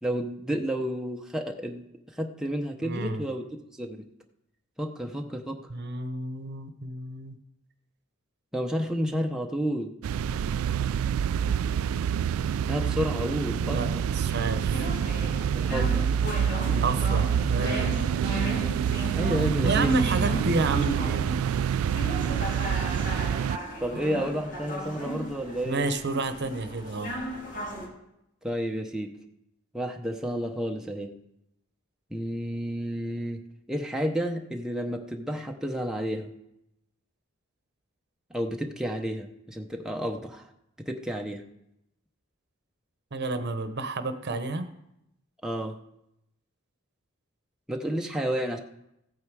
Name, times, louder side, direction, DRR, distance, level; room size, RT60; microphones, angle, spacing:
voice 1, 0.0-1.9 2.2-3.4 3.8-4.0 4.8-5.6 8.5-9.9 12.7-13.8 15.5-16.1 16.7-16.8 19.1-19.9 23.8-25.9 28.4-29.2 29.7-31.1 32.1-33.4 33.7-36.3 38.3-40.5 40.8-41.4 45.4-45.8 47.7-48.6, equal, 5° right, 1 dB, 0.7 m, -31 dB
voice 2, 2.8-3.2 5.7-7.4 13.5-14.9 16.7-17.9 19.6-21.5 23.9-24.0 25.7-27.2 43.1-44.7, right 2 dB, 55° right, 9 dB, 0.9 m, -30 dB
sound 1, 10.0-23.6, right 8 dB, 85° right, 0.3 m, -27 dB
sound 2, 14.7-27.9, right 1 dB, 60° left, 3.2 m, -36 dB
15.0 x 8.9 x 4.8 m, 0.84 s
head